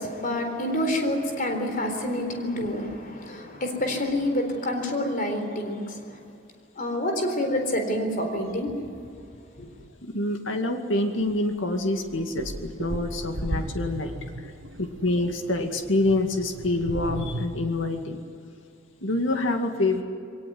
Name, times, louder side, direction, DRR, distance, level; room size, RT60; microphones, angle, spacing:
voice 1, 0.0-6.2 6.8-8.8 9.6-9.7, left 1 dB, 45° left, 5 dB, 4.0 m, -28 dB
voice 2, 10.0-14.1 14.8-18.2 19.0-20.0, left 2 dB, 80° left, 5 dB, 2.2 m, -26 dB
sound 1, 11.2-11.4 11.9-17.5, right 1 dB, 80° right, 1.8 m, -35 dB
22.5 x 19.0 x 9.5 m, 2.5 s
head